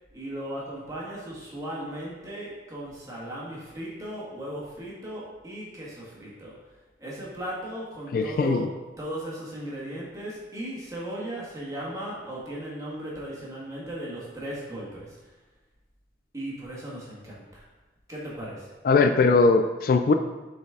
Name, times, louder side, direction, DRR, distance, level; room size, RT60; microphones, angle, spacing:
voice 1, 0.1-6.6 7.0-8.7 9.0-15.3 16.3-17.6 18.1-18.7, right 1 dB, 20° right, -6 dB, 1.7 m, -37 dB
voice 2, 8.1-8.7 18.8-20.1, left 4 dB, 50° left, 7 dB, 0.3 m, -20 dB
7.3 x 4.1 x 3.6 m, 1.1 s
head